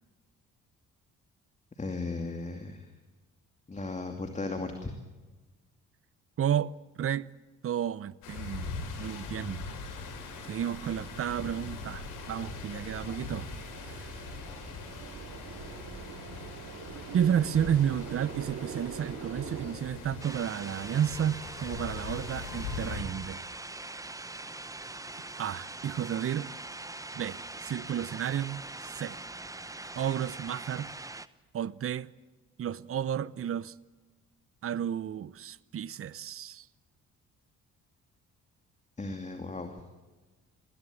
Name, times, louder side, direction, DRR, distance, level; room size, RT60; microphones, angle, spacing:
voice 1, 1.8-2.9 3.7-4.9 39.0-39.8, left 3 dB, 25° left, 2.5 m, -36 dB
voice 2, 6.4-7.3 7.6-8.7 9.0-9.7 10.5-13.5 13.8-14.1 17.1-23.4 25.4-26.5 27.1-29.2 30.0-30.9 31.5-32.1 32.6-33.7 34.6-36.7, right 9 dB, 50° right, 0.8 m, -32 dB
sound 1, 8.2-23.0, left 4 dB, 90° left, 4.8 m, -41 dB
sound 2, 9.7-19.7, right 6 dB, 65° right, 3.3 m, -45 dB
sound 3, 20.2-31.3, right 2 dB, 10° right, 0.9 m, -42 dB
21.5 x 16.0 x 9.4 m
cardioid pair, 90°, 30 cm